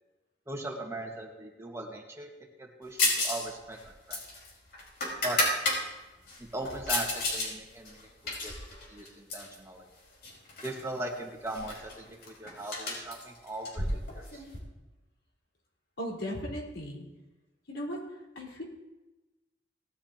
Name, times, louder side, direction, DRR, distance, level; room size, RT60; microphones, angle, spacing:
voice 1, 0.5-2.3 2.6-4.2 5.2-5.4 6.4-9.9 10.6-14.4, right 1 dB, 15° right, 0 dB, 1.7 m, -39 dB
sound 1, 3.0-3.5 3.7-5.8 6.3-7.5 7.9-9.6 10.2-10.8 11.1-11.2 11.5-14.6, left 2 dB, 65° left, 4.9 m, -31 dB
voice 2, 16.0-17.1 17.7-18.6, equal, 85° left, -3 dB, 4.6 m, -37 dB
19.0 x 12.5 x 2.9 m, 1.1 s
head